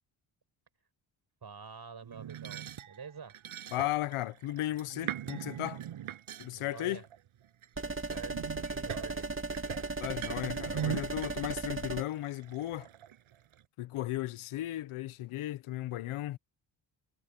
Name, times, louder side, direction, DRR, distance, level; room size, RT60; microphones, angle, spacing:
voice 1, 1.4-3.4 6.4-7.0 7.8-9.3, right 6 dB, 50° right, 6.5 m, -47 dB
sound 1, 2.0-7.7 8.1-13.6, right 11 dB, 80° right, 7.5 m, -42 dB
voice 2, 3.7-5.8 6.4-7.0 10.0-12.9 13.8-16.4, left 15 dB, 85° left, 1.3 m, -35 dB
sound 2, 7.8-12.0, right 3 dB, 25° right, 2.9 m, -36 dB
supercardioid pair, 60°, 49 cm